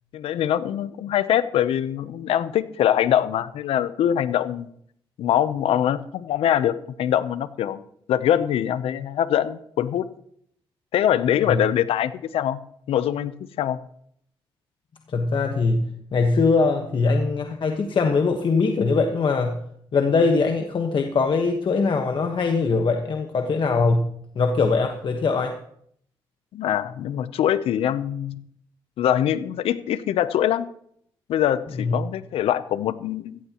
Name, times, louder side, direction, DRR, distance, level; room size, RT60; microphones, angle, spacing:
voice 1, 0.1-4.7 5.2-7.8 8.1-10.1 10.9-12.6 12.9-13.8 26.5-28.4 29.0-30.7 31.3-33.4, left 10 dB, 85° left, 14 dB, 0.7 m, -23 dB
voice 2, 15.1-15.9 16.1-19.5 19.9-24.0 24.3-25.5 31.8-32.0, left 4 dB, 60° left, 4 dB, 1.3 m, -21 dB
15.0 x 15.0 x 3.0 m, 0.68 s
cardioid pair, 60°, 10 cm